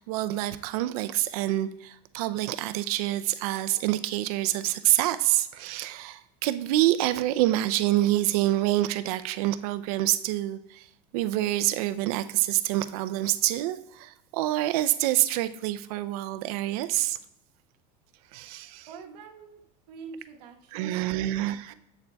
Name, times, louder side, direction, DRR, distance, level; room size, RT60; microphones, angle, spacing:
voice 1, 0.0-10.8 11.1-17.2 18.3-18.9 20.7-21.7, right 15 dB, 65° right, 12 dB, 0.5 m, -27 dB
voice 2, 18.9-19.6 19.9-21.7, right 5 dB, 85° right, 2 dB, 1.1 m, -45 dB
8.2 x 6.5 x 2.2 m, 0.86 s
supercardioid pair, 155°, 20 cm